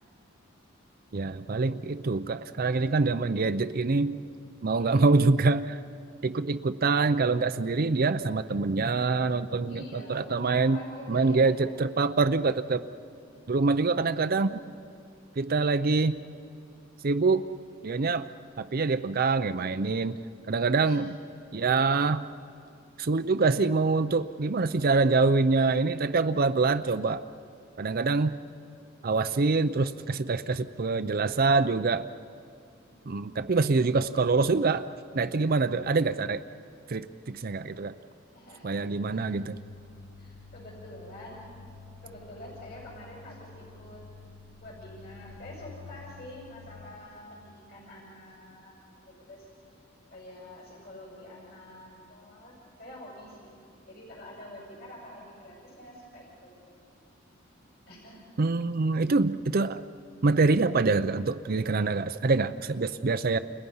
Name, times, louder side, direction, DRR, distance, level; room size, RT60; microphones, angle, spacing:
voice 1, 1.1-4.2 4.6-5.8 6.2-10.8 11.1-12.8 13.5-14.6 15.4-16.2 17.0-17.5 17.8-18.3 18.6-20.2 20.5-21.2 21.5-22.3 23.0-27.3 27.8-28.4 29.0-32.1 33.1-34.9 35.1-36.4 36.9-37.9 38.6-39.6 58.4-59.8 60.2-63.4, right 3 dB, 45° right, 10 dB, 0.6 m, -25 dB
voice 2, 4.8-5.1 9.7-11.5 20.8-21.0 32.9-33.5 38.3-39.3 40.2-41.4 42.0-44.0 44.6-48.7 49.3-49.5 50.1-53.5 53.9-56.5 57.9-58.3, left 1 dB, 50° left, -3 dB, 6.7 m, -47 dB
sound 1, 39.0-46.9, left 4 dB, 80° left, 3.1 m, -49 dB
29.5 x 29.5 x 5.6 m, 2.4 s
head